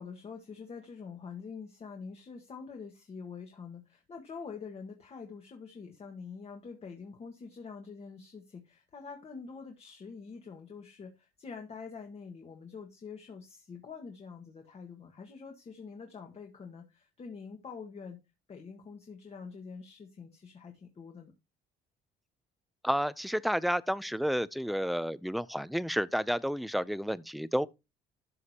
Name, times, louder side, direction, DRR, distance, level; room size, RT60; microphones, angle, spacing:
voice 1, 0.0-18.2 18.5-21.3, left 5 dB, 35° left, 1.6 m, -46 dB
voice 2, 22.8-27.7, equal, ahead, 0.5 m, -31 dB
12.5 x 6.2 x 2.9 m
cardioid pair, 110°, 17 cm